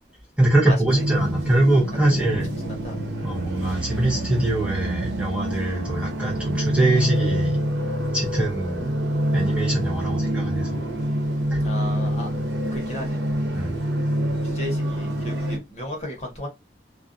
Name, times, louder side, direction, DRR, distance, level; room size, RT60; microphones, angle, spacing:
voice 1, 0.4-2.5 3.2-7.6 8.1-8.9 9.3-10.8 11.5-11.6 13.5-13.7, right 1 dB, 5° right, 0.7 m, -23 dB
sound 1, 0.9-15.6, equal, 90° right, 0.8 m, -26 dB
voice 2, 2.3-3.0 9.9-10.0 11.6-12.3 12.7-13.2 14.4-16.5, left 1 dB, 40° left, 0.9 m, -34 dB
2.3 x 2.2 x 2.5 m
head